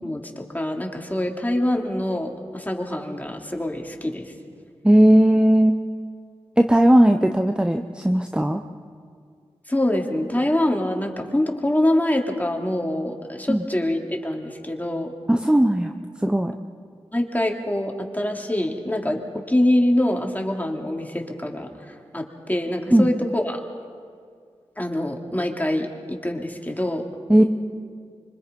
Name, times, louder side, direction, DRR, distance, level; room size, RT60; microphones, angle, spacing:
voice 1, 0.0-4.3 9.7-15.1 17.1-23.6 24.8-27.0 27.4-27.5, left 1 dB, 15° left, 1 dB, 3.2 m, -25 dB
voice 2, 4.8-5.8 6.6-8.6 13.5-13.6 15.3-15.9 16.2-16.5 22.9-23.1 27.3-27.4, right 1 dB, 10° right, 6 dB, 1.0 m, -17 dB
25.5 x 24.5 x 5.5 m, 2.1 s
cardioid pair, 45°, 11 cm